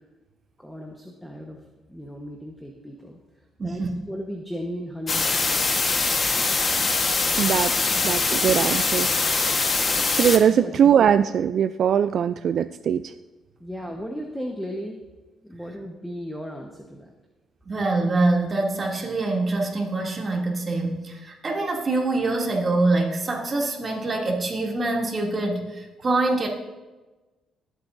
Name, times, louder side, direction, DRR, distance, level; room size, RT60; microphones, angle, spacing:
voice 1, 0.6-1.6 1.9-3.2 3.6-5.7 10.5-10.7 13.6-15.0 15.4-17.1, equal, ahead, 1 dB, 1.2 m, -35 dB
voice 2, 3.6-3.9 7.9-8.0 17.7-26.5, right 2 dB, 35° right, -1 dB, 2.7 m, -25 dB
sound 1, 5.1-10.4, left 3 dB, 35° left, 1.4 m, -23 dB
voice 3, 7.4-7.7 8.0-9.5 10.1-13.0, right 8 dB, 60° right, 11 dB, 0.3 m, -21 dB
21.0 x 8.2 x 2.7 m, 1.2 s
cardioid pair, 90°, 0 cm